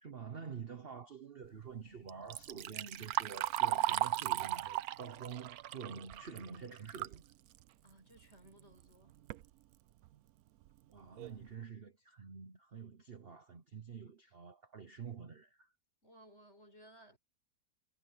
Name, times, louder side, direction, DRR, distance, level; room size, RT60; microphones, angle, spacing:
voice 1, 0.0-7.2 10.9-15.7, right 6 dB, 40° right, 1.0 m, -48 dB
Liquid, 2.1-7.2 7.6-7.7 8.6-8.7 9.1-9.4 10.1-10.2 10.7-10.8 11.2-11.4, right 13 dB, 70° right, 1.0 m, -36 dB
voice 2, 7.8-9.2 16.0-17.2, right 1 dB, 35° left, 6.9 m, -60 dB
omnidirectional pair, 1.9 m